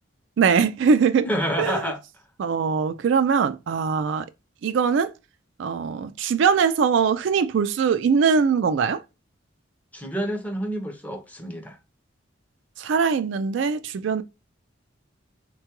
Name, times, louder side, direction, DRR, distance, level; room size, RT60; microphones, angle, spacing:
voice 1, 0.4-1.3 1.6-1.8 2.4-4.3 4.6-5.1 5.6-9.0 12.8-14.2, right 6 dB, 70° right, 0.3 m, -21 dB
voice 2, 1.2-2.0 9.9-11.8, equal, 10° left, 0.6 m, -28 dB
3.8 x 2.2 x 2.8 m
head